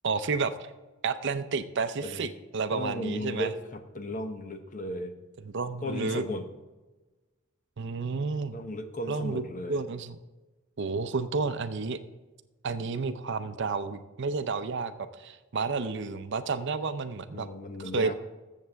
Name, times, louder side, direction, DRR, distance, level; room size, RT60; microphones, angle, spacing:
voice 1, 0.0-0.7 1.0-3.5 5.4-6.2 7.8-8.6 9.1-9.4 9.7-10.2 10.8-12.0 12.6-17.5 17.9-18.1, right 4 dB, 60° right, 11 dB, 0.6 m, -31 dB
voice 2, 2.7-5.1 5.8-6.5 8.5-9.8 17.3-18.1, left 1 dB, 40° left, 7 dB, 0.9 m, -35 dB
14.0 x 7.4 x 3.4 m, 1.2 s
head